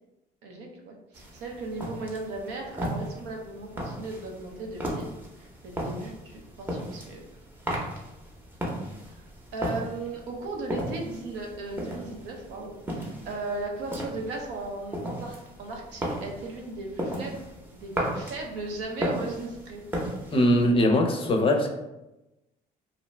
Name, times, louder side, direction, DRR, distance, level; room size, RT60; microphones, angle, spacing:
voice 1, 0.4-5.1 5.4-7.2 9.1-9.2 9.5-17.4 17.7-19.8, right 2 dB, 85° right, 1 dB, 0.6 m, -37 dB
sound 1, 1.1-20.7, equal, 10° right, 0.6 m, -36 dB
voice 2, 20.3-21.7, left 1 dB, 35° left, 3 dB, 0.4 m, -21 dB
2.5 x 2.1 x 3.1 m, 0.98 s
cardioid pair, 110°, 17 cm